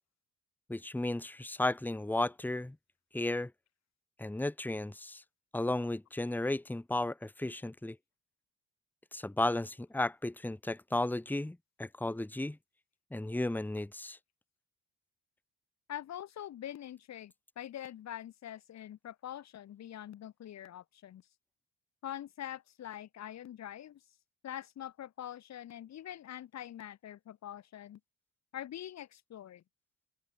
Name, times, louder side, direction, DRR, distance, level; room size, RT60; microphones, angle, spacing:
voice 1, 0.7-2.8 3.1-3.5 4.2-5.2 5.5-8.0 9.1-12.6 13.1-14.2, left 2 dB, 5° left, 1.3 m, -34 dB
voice 2, 15.9-21.2 22.0-24.0 24.4-28.0 28.5-29.6, left 11 dB, 60° left, 1.3 m, -44 dB
open air
cardioid pair, 90°, 30 cm